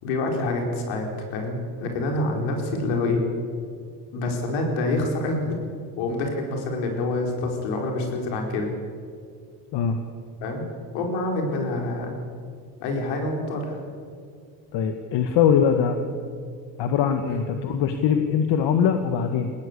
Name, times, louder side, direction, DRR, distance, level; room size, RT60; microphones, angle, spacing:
voice 1, 0.0-3.2 4.1-8.7 10.4-10.6 10.9-12.2 12.8-13.8 17.3-17.4, left 2 dB, 75° left, 2 dB, 4.9 m, -27 dB
voice 2, 14.7-16.0 16.8-19.5, left 7 dB, 60° left, 6 dB, 1.7 m, -22 dB
20.5 x 17.0 x 8.2 m, 2.1 s
supercardioid pair, 85°, 48 cm